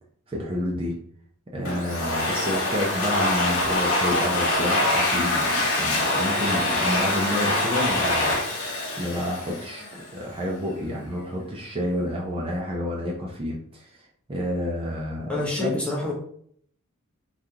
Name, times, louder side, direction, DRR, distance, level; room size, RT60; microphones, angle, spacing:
voice 1, 0.3-1.0 1.5-8.7 9.0-9.8 10.1-15.7, left 1 dB, 25° right, -2 dB, 0.5 m, -29 dB
Domestic sounds home sounds, 1.7-10.1, left 1 dB, 80° left, 0.9 m, -24 dB
voice 2, 15.3-16.1, left 2 dB, 5° left, -3 dB, 0.8 m, -27 dB
3.6 x 2.3 x 2.8 m, 0.63 s
head